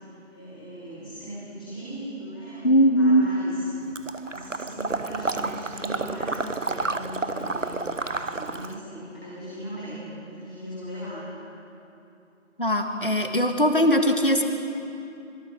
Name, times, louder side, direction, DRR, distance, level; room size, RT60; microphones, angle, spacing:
voice 1, 0.3-3.7 4.2-11.2, right 1 dB, 5° left, -15 dB, 3.8 m, -38 dB
voice 2, 2.6-3.2 12.6-14.4, equal, 45° left, 4 dB, 1.9 m, -20 dB
Water / Liquid, 4.0-8.8, right 3 dB, 80° right, 1.0 m, -30 dB
26.0 x 23.0 x 5.1 m, 2.7 s
figure-of-eight pair, 175°, 38 cm